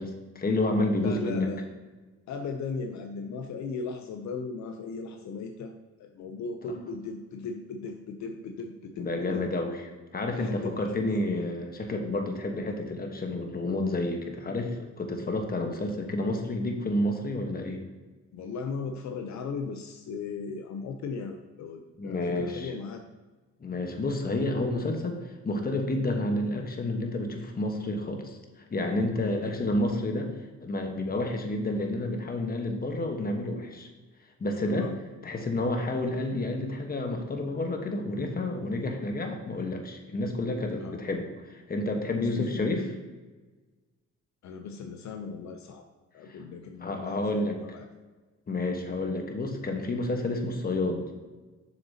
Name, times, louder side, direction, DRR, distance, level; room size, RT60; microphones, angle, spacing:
voice 1, 0.0-1.5 6.6-6.7 9.0-9.8 10.1-17.8 22.0-22.7 23.6-25.2 25.4-28.4 28.7-30.3 30.6-33.9 34.4-34.9 35.2-42.9 46.3-46.4 46.8-47.6 48.5-51.1, left 2 dB, 30° left, 4 dB, 1.2 m, -30 dB
voice 2, 1.0-1.7 2.3-5.7 6.0-9.4 10.4-11.0 18.3-23.0 29.2-29.6 34.7-35.0 40.7-41.0 42.2-42.6 44.4-45.8 46.1-47.8, left 4 dB, 65° left, 5 dB, 0.7 m, -37 dB
7.1 x 6.6 x 2.8 m, 1.3 s
cardioid pair, 90°, 30 cm